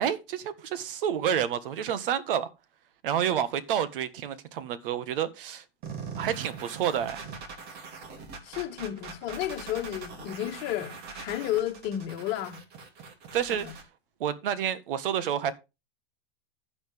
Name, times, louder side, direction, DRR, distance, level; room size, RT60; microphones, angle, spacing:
voice 1, 0.0-2.5 3.0-5.6 6.2-7.2 13.3-13.7 14.2-15.5, right 9 dB, 65° right, 1.6 m, -29 dB
sound 1, 5.8-13.8, right 5 dB, 35° right, 2.7 m, -42 dB
voice 2, 8.4-12.6 13.5-13.7, left 12 dB, 35° left, 2.1 m, -32 dB
10.0 x 9.8 x 3.5 m
supercardioid pair, 150°, 30 cm